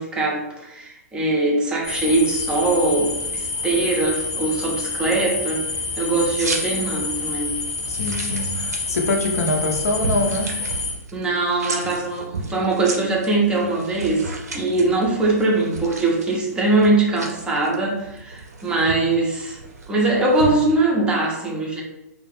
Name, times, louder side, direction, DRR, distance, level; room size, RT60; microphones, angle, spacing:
voice 1, 0.0-5.6 6.0-7.5 11.1-19.6 19.9-21.8, right 2 dB, 10° right, -2 dB, 0.5 m, -21 dB
sound 1, 1.8-10.9, left 3 dB, 25° left, 0.7 m, -28 dB
sound 2, 6.4-20.5, right 3 dB, 75° right, 0.6 m, -34 dB
voice 2, 7.9-10.5, left 2 dB, 65° left, 1 dB, 0.6 m, -24 dB
2.3 x 2.1 x 3.1 m, 0.89 s
figure-of-eight pair, 120°, 9 cm